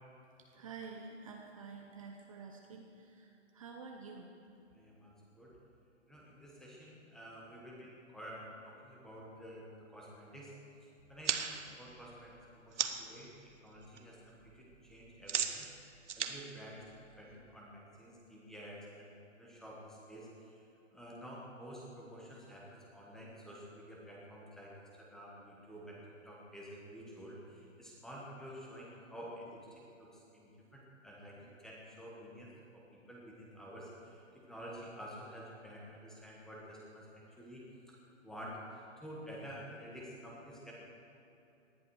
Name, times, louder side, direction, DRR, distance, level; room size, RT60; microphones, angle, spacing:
voice 1, 0.4-4.3, right 4 dB, 30° right, 1 dB, 0.8 m, -49 dB
voice 2, 4.7-5.5 6.1-10.5 10.8-15.7 16.1-16.9 17.2-20.7 20.9-38.0 38.2-40.7, equal, ahead, -4 dB, 1.1 m, -50 dB
sound 1, 11.0-13.2 13.6-14.0 14.3-17.5, right 7 dB, 70° right, 1.1 m, -38 dB
18.5 x 11.5 x 4.7 m, 2.8 s
hypercardioid pair, 160°, 37 cm